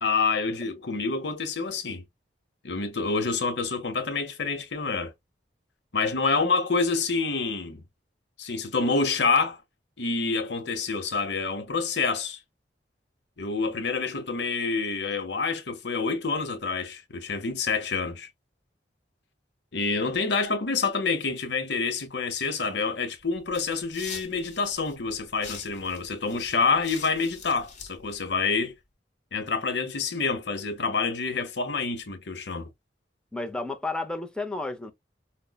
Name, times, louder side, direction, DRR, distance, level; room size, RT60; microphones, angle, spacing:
voice 1, 0.0-2.0 2.6-5.1 5.9-7.8 8.4-9.6 10.0-12.4 13.4-18.3 19.7-28.7 29.3-32.7, left 4 dB, 70° left, 0.9 m, -27 dB
sound 1, 23.2-28.7, left 5 dB, 40° left, 1.1 m, -45 dB
voice 2, 33.3-34.9, left 2 dB, 5° left, 0.6 m, -32 dB
5.1 x 2.1 x 2.2 m
head